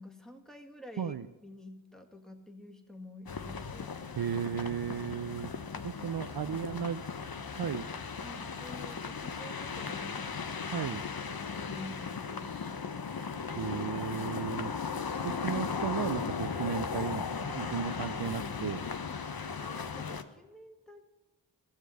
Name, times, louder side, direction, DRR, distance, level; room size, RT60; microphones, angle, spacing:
voice 1, 0.0-1.1 1.4-4.0 5.7-6.3 8.2-10.9 11.3-12.5 19.5-21.0, left 1 dB, ahead, 4 dB, 2.0 m, -50 dB
sound 1, 3.3-20.2, left 5 dB, 50° left, 1.0 m, -37 dB
voice 2, 4.2-5.5 5.8-7.0 7.6-7.9 10.7-11.0 13.6-14.7 15.2-18.8, right 8 dB, 55° right, 10 dB, 0.6 m, -35 dB
15.5 x 7.4 x 8.4 m, 1.1 s
cardioid pair, 40°, 44 cm